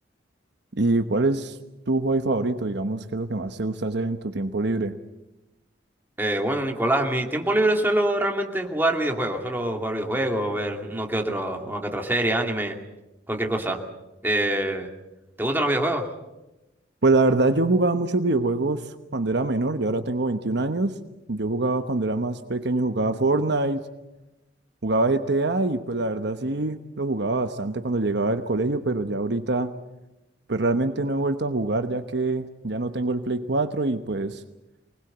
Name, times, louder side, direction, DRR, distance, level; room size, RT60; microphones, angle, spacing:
voice 1, 0.8-1.6 1.9-4.9 17.0-18.8 19.1-21.0 21.3-23.8 24.8-29.7 30.5-34.4, right 2 dB, 60° right, 8 dB, 1.0 m, -24 dB
voice 2, 6.2-12.7 13.3-13.8 14.2-14.9 15.4-16.1, right 1 dB, 10° right, 2 dB, 2.5 m, -25 dB
24.0 x 20.0 x 8.0 m, 0.98 s
head